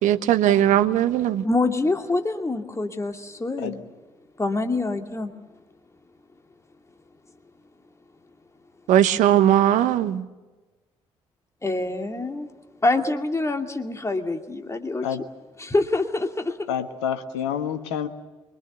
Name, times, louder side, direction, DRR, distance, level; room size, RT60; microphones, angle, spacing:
voice 1, 0.0-1.4 8.9-10.3, right 11 dB, 60° right, 11 dB, 1.1 m, -19 dB
voice 2, 1.4-3.8 4.4-5.3 11.6-12.5 12.8-15.1 15.6-16.7, left 2 dB, 20° left, 5 dB, 2.5 m, -25 dB
voice 3, 16.7-18.1, left 8 dB, 70° left, 8 dB, 1.5 m, -28 dB
25.0 x 24.5 x 6.9 m, 1.2 s
figure-of-eight pair, 40°, 15 cm